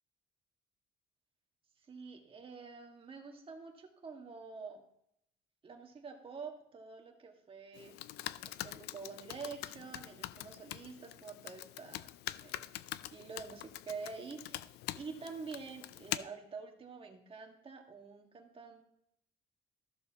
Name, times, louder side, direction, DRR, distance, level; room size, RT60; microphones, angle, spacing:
voice 1, 1.9-4.8 5.6-7.9 8.5-12.1 12.4-12.8 13.1-18.8, right 5 dB, 30° right, 2 dB, 1.8 m, -47 dB
Computer keyboard, 7.7-16.2, left 15 dB, 75° left, 0.4 m, -44 dB
13.5 x 6.8 x 2.9 m, 0.77 s
cardioid pair, 110°, 17 cm